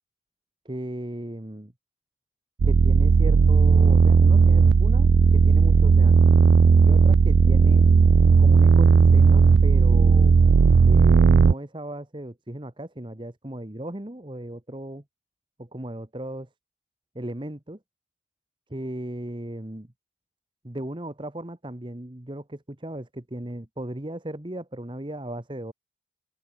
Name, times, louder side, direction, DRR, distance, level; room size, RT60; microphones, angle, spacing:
voice 1, 0.6-1.7 2.6-6.3 6.8-7.9 8.4-10.3 10.8-15.0 15.6-16.5 17.1-17.8 18.7-19.9 20.6-25.7, right 1 dB, 30° right, 1.3 m, -36 dB
sound 1, 2.6-11.5, right 5 dB, 75° right, 0.4 m, -16 dB
head